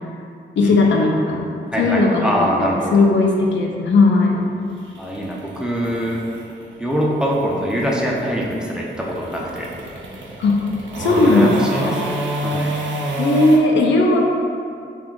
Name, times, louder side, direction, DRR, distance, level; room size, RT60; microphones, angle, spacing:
voice 1, 0.6-1.5 1.8-2.3 2.9-4.5 10.4-10.6 11.0-12.0 13.2-14.2, left 2 dB, 80° left, 0 dB, 0.4 m, -16 dB
voice 2, 1.7-3.1 5.0-6.3 6.8-9.7 11.0-12.2 12.4-12.8, equal, 5° right, -3 dB, 0.3 m, -23 dB
sound 1, 1.7-13.6, right 1 dB, 85° right, 0.4 m, -29 dB
2.5 x 2.3 x 3.7 m, 2.5 s
wide cardioid pair, 105°, 19 cm